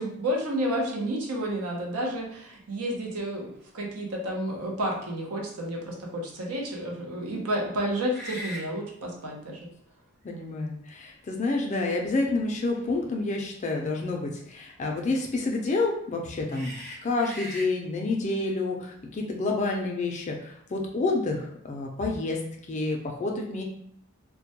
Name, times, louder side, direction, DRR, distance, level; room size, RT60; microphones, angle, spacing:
voice 1, 0.0-9.6, right 1 dB, 80° right, -1 dB, 0.6 m, -31 dB
sound 1, 2.8-2.9 3.4-3.6 8.0-8.7 9.9-10.0 11.0-11.8 13.7-13.9 16.5-17.7, equal, 55° right, 0.8 m, -40 dB
voice 2, 10.2-16.8 17.0-22.4 22.7-23.6, left 3 dB, 30° left, 1 dB, 0.3 m, -29 dB
2.2 x 2.1 x 2.8 m, 0.70 s
head